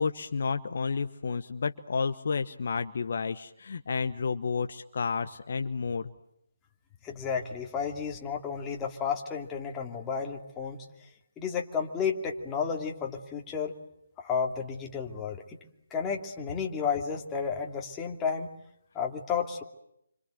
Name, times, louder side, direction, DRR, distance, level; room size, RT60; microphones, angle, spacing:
voice 1, 0.0-6.1, left 5 dB, 50° left, 8 dB, 1.2 m, -31 dB
voice 2, 7.0-10.8 11.4-13.7 14.2-15.4 15.9-18.5 18.9-19.6, left 6 dB, 10° left, 0 dB, 2.7 m, -32 dB
29.0 x 26.0 x 7.9 m, 0.81 s
figure-of-eight pair, 150°, 0 cm